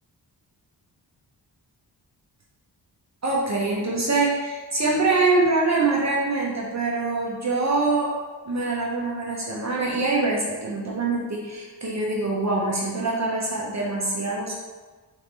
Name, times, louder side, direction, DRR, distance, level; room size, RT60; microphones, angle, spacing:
voice 1, 3.2-8.1 8.4-14.5, right 3 dB, 40° right, -3 dB, 0.7 m, -24 dB
4.0 x 3.5 x 3.3 m, 1.3 s
wide cardioid pair, 110°, 43 cm